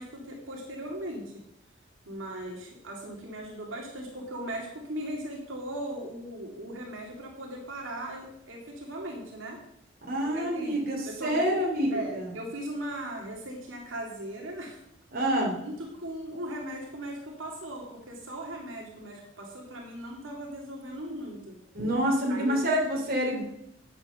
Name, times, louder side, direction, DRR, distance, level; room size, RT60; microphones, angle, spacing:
voice 1, 0.0-1.3 2.1-9.6 10.3-10.8 11.0-11.5 11.9-14.8 15.2-15.3 15.6-21.5 22.3-22.6, right 1 dB, 85° right, -1 dB, 2.4 m, -38 dB
voice 2, 10.1-11.0 11.2-12.3 15.1-15.6 21.7-23.4, equal, 50° right, -1 dB, 3.0 m, -27 dB
9.5 x 7.9 x 6.3 m, 0.80 s
head